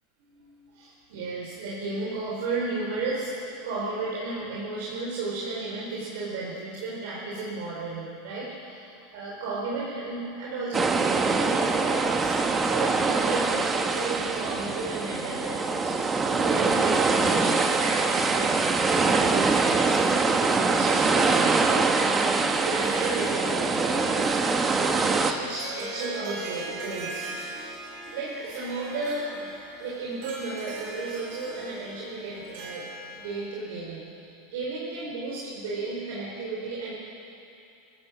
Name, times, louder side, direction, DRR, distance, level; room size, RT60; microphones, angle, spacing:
voice 1, 0.2-18.6 18.9-22.4 22.6-27.7 28.1-29.5 29.8-32.9 33.1-36.9, right 3 dB, 75° right, -5 dB, 5.2 m, -34 dB
sound 1, 10.7-25.3, right 4 dB, 20° right, 1.3 m, -24 dB
Harp, 22.6-33.5, right 2 dB, 55° right, 4.9 m, -39 dB
25.5 x 15.0 x 7.8 m, 2.6 s
supercardioid pair, 130°, 0 cm